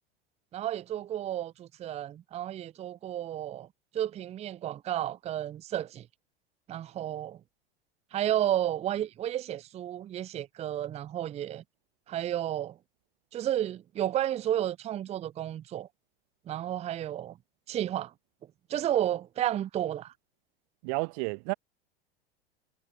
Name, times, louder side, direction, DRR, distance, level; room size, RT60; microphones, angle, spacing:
voice 1, 0.5-3.7 3.9-6.1 6.7-7.4 8.1-11.6 12.1-12.7 13.3-15.9 16.5-17.3 17.7-18.1 18.7-20.1, right 12 dB, 20° right, 0.7 m, -32 dB
voice 2, 20.8-21.5, right 40 dB or more, 45° right, 1.6 m, -31 dB
figure-of-eight pair, 85°, 31 cm